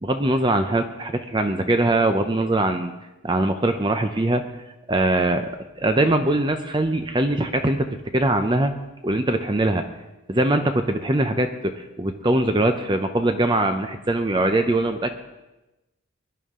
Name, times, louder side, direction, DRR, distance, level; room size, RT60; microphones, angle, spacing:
voice 1, 0.0-2.9 3.2-4.4 4.9-5.5 5.8-8.7 9.0-9.9 10.3-15.1, right 1 dB, 20° right, 7 dB, 0.6 m, -22 dB
21.5 x 11.0 x 3.7 m, 1.0 s
head